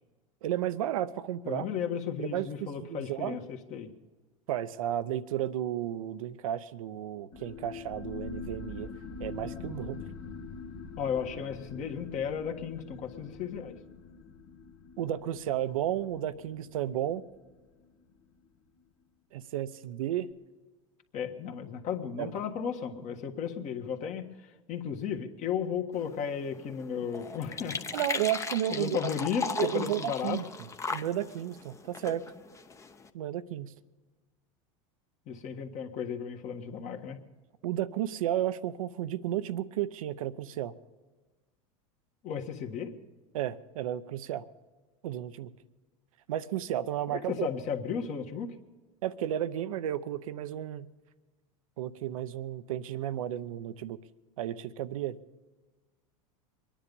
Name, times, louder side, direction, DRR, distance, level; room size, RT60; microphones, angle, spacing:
voice 1, 0.4-1.7 2.2-3.4 4.5-8.9 9.2-10.0 15.0-17.2 19.3-20.3 22.2-22.3 27.9-29.0 29.5-30.4 30.9-32.2 33.1-33.7 37.6-40.7 43.3-44.5 45.0-45.5 46.3-47.5 49.0-50.9 51.8-54.0 54.4-55.2, right 12 dB, 85° right, 15 dB, 0.7 m, -33 dB
voice 2, 1.4-3.9 11.0-13.7 21.1-24.2 24.7-27.8 28.7-30.4 35.3-37.2 42.2-42.9 47.1-48.5, left 7 dB, 45° left, 3 dB, 1.6 m, -34 dB
sound 1, 7.3-18.4, left 5 dB, 75° left, 1.7 m, -44 dB
sound 2, 25.9-33.1, left 4 dB, 15° left, 0.8 m, -38 dB
23.5 x 10.5 x 5.4 m, 1.3 s
hypercardioid pair, 110°, 17 cm